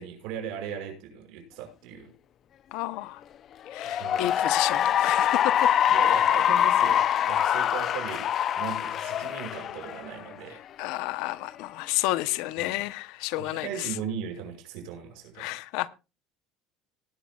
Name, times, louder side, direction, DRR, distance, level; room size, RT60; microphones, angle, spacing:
voice 1, 0.0-2.1 3.8-4.3 5.9-10.6 12.6-12.8 13.4-15.5, right 8 dB, 75° right, 5.7 m, -38 dB
voice 2, 2.7-3.2 3.7-5.7 7.5-7.6 10.8-14.0 15.4-15.9, left 17 dB, 75° left, 0.8 m, -31 dB
Cheering / Applause, 3.7-10.4, left 10 dB, 40° left, 0.5 m, -24 dB
19.0 x 11.5 x 2.3 m
cardioid pair, 135°, 0 cm